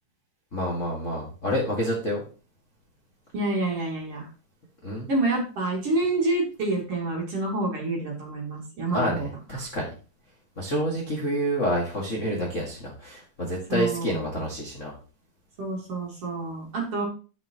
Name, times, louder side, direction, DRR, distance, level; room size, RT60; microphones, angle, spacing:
voice 1, 0.5-2.2 4.8-5.1 8.9-9.9 10.6-14.9, equal, 35° left, -3 dB, 1.3 m, -28 dB
voice 2, 3.3-4.3 5.1-9.3 13.7-14.4 15.6-17.0, right 2 dB, 40° right, -1 dB, 3.2 m, -28 dB
10.5 x 7.2 x 3.0 m, 0.36 s
omnidirectional pair, 4.4 m